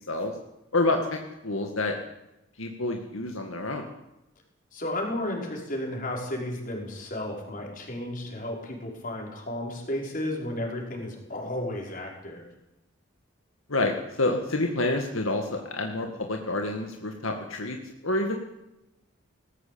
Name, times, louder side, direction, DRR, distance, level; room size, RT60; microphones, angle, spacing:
voice 1, 0.7-2.0 2.6-3.9 13.7-17.8 18.0-18.3, left 2 dB, 80° left, 3 dB, 2.1 m, -28 dB
voice 2, 4.7-12.4, left 1 dB, 40° left, 0 dB, 5.6 m, -33 dB
19.5 x 15.5 x 8.8 m, 0.93 s
head